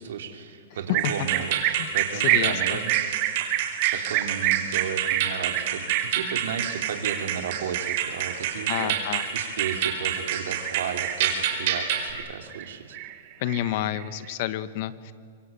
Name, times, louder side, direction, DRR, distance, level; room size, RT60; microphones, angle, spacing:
voice 1, 0.0-1.6 1.9-3.0 3.9-13.0, right 7 dB, 75° right, 6 dB, 3.1 m, -34 dB
sound 1, 0.9-10.3 10.6-11.4 11.7-12.7 12.9-14.3, right 14 dB, 40° right, 1.7 m, -29 dB
sound 2, 1.0-12.1, right 8 dB, 55° right, 4.6 m, -29 dB
voice 2, 2.2-2.8 8.7-9.2 13.4-15.1, left 12 dB, 50° left, 14 dB, 1.2 m, -29 dB
25.5 x 22.5 x 9.1 m, 2.2 s
hypercardioid pair, 140°, 0 cm